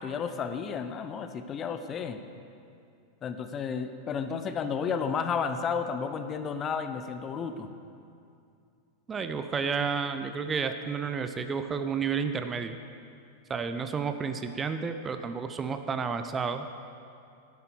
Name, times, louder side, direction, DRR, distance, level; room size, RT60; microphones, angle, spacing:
voice 1, 0.0-2.2 3.2-7.7, left 6 dB, 25° left, 9 dB, 0.7 m, -32 dB
voice 2, 9.1-12.8 13.5-16.6, right 5 dB, 20° right, 8 dB, 0.5 m, -31 dB
11.0 x 9.6 x 6.4 m, 2.5 s
figure-of-eight pair, 90°, 0 cm